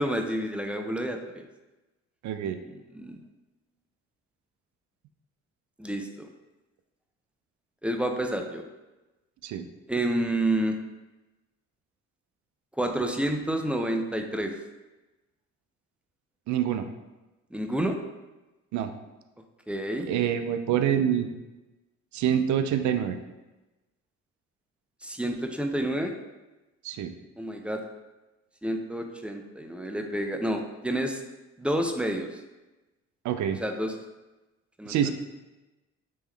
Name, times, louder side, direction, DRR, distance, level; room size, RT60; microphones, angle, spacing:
voice 1, 0.0-1.4 2.9-3.2 5.8-6.3 7.8-8.6 9.9-10.8 12.8-14.6 17.5-18.0 19.7-20.1 25.0-26.1 27.4-27.8 28.6-31.2 31.6-32.3 33.5-33.9 34.8-35.1, right 1 dB, 5° right, 4 dB, 0.3 m, -29 dB
voice 2, 2.2-2.6 9.4-9.7 16.5-16.9 18.7-18.9 20.1-21.3 22.1-23.2 26.8-27.1 33.2-33.6 34.9-35.1, right 9 dB, 70° right, 8 dB, 0.4 m, -26 dB
3.6 x 3.0 x 3.3 m, 1.1 s
cardioid pair, 90°, 30 cm